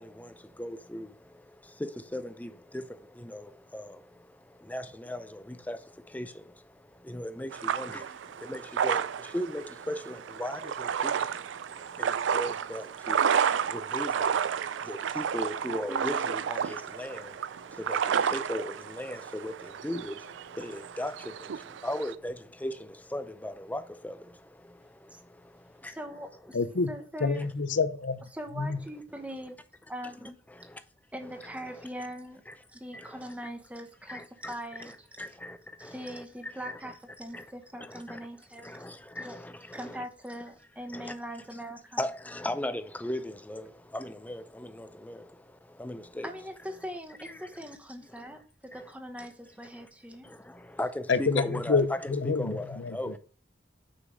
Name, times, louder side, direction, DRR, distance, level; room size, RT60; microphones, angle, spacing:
voice 1, 0.0-26.0 27.4-27.5 30.5-30.8 31.6-31.9 32.5-32.6 32.9-33.3 34.1-34.5 34.8-36.9 37.3-37.5 37.8-38.2 38.6-40.1 40.9-41.2 42.0-46.3 47.2-47.5 48.2-48.4 48.7-48.8 49.2-49.3 49.7-49.9 50.2-53.2, left 1 dB, 10° left, 0.5 m, -38 dB
sound 1, 7.5-22.1, right 7 dB, 75° right, 0.4 m, -31 dB
voice 2, 15.9-16.3 25.1-25.2 25.8-26.6 26.9-27.5 28.3-29.6 29.9-30.4 31.1-32.4 32.7-34.9 35.8-38.9 39.1-39.4 39.7-42.1 46.2-48.4 48.7-50.3, equal, 5° right, 1.0 m, -41 dB
voice 3, 26.5-26.9 27.2-28.2 28.6-28.8 51.1-53.0, left 4 dB, 75° left, 0.7 m, -27 dB
6.3 x 5.7 x 6.4 m
head